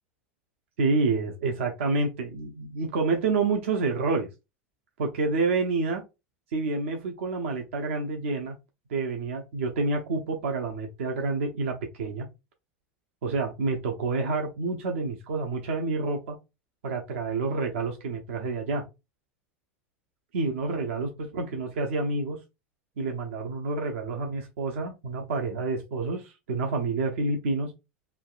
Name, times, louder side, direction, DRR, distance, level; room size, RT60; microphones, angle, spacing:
voice 1, 0.8-4.3 5.0-6.0 6.5-8.6 8.9-12.3 13.2-16.4 16.8-18.8 20.3-22.4 23.0-27.7, right 3 dB, 75° right, 2 dB, 0.5 m, -28 dB
3.3 x 2.2 x 2.3 m, 0.25 s
hypercardioid pair, 90°, 7 cm